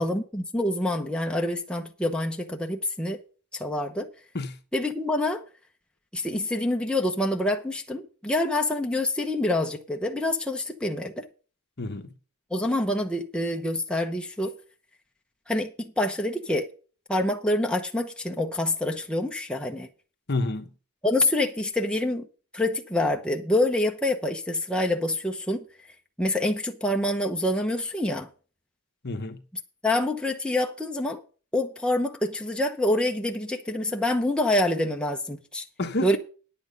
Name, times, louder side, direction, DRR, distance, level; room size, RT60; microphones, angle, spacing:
voice 1, 0.0-3.2 3.5-4.1 4.7-5.4 6.1-11.3 12.5-14.5 15.5-16.7 17.1-19.9 21.0-22.3 22.5-25.6 26.2-28.3 29.8-31.2 31.5-35.7 36.0-36.2, left 1 dB, 5° left, 0.8 m, -26 dB
voice 2, 11.8-12.1 20.3-20.7 29.0-29.4 35.8-36.2, left 2 dB, 50° left, 1.1 m, -29 dB
9.7 x 8.6 x 5.2 m
head